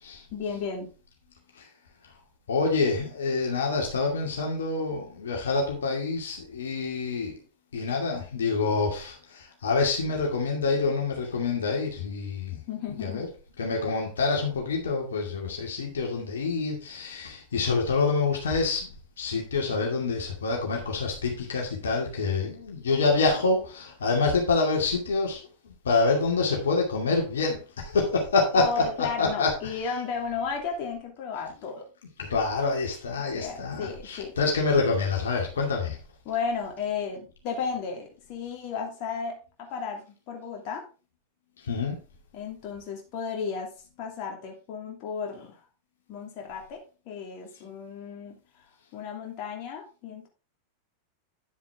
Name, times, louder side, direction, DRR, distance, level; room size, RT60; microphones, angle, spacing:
voice 1, 0.3-0.9 12.7-13.3 28.5-31.8 33.3-34.3 36.2-40.8 42.3-43.7 44.0-45.6 46.1-46.8 47.1-48.3 48.9-50.3, left 5 dB, 40° left, 1 dB, 2.7 m, -34 dB
voice 2, 2.5-7.3 7.7-12.6 12.9-13.3 13.6-18.9 19.2-25.4 25.6-29.5 32.2-36.0 41.6-42.0, left 4 dB, 65° left, 0 dB, 2.4 m, -27 dB
9.9 x 7.3 x 3.6 m, 0.33 s
figure-of-eight pair, 90°, 0 cm